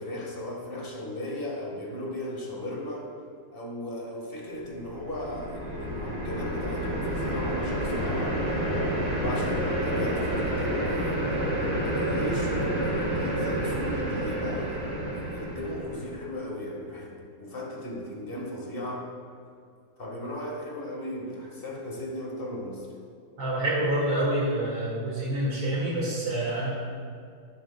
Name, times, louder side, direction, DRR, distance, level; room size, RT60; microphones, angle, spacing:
voice 1, 0.0-3.1 3.5-8.6 9.2-11.2 11.6-19.1 20.0-22.9, left 1 dB, 30° left, -2 dB, 1.6 m, -36 dB
sound 1, 4.7-16.1, right 1 dB, 35° right, 2.8 m, -29 dB
voice 2, 23.4-26.7, right 1 dB, 80° right, -8 dB, 2.9 m, -27 dB
11.5 x 11.5 x 2.3 m, 2.3 s
omnidirectional pair, 2.2 m